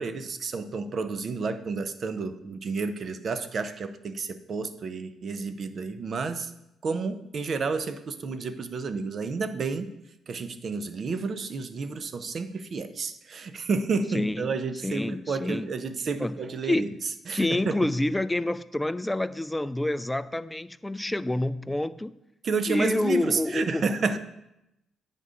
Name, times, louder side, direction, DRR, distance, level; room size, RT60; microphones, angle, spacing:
voice 1, 0.0-6.5 6.8-9.9 10.3-16.9 17.3-17.8 22.4-24.2, right 4 dB, 50° right, 11 dB, 0.6 m, -30 dB
voice 2, 14.1-14.5 14.8-15.7 16.2-17.0 17.3-22.2 22.7-23.8, left 1 dB, 10° left, 15 dB, 0.3 m, -28 dB
9.3 x 5.3 x 3.8 m, 0.85 s
cardioid pair, 90°, 0 cm